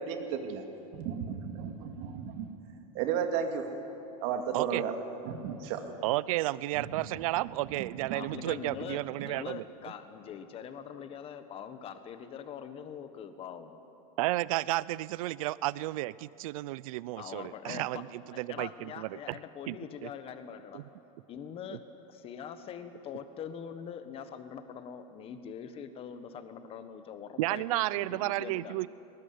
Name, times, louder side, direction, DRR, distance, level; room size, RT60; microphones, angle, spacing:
voice 1, 0.0-0.6 0.9-2.5 2.9-3.6 4.2-5.0 5.2-5.9 6.7-7.2 7.7-8.4, right 7 dB, 55° right, 5 dB, 2.3 m, -34 dB
voice 2, 6.0-9.6 14.2-18.1 18.4-19.1 19.7-19.8 20.0-20.1 20.7-20.8 27.4-28.9, right 17 dB, 70° right, 20 dB, 0.5 m, -32 dB
voice 3, 8.1-13.8 17.2-18.0 18.3-20.8 21.3-28.8, left 8 dB, 30° left, 9 dB, 1.4 m, -43 dB
20.0 x 19.5 x 9.5 m, 2.9 s
supercardioid pair, 140°, 18 cm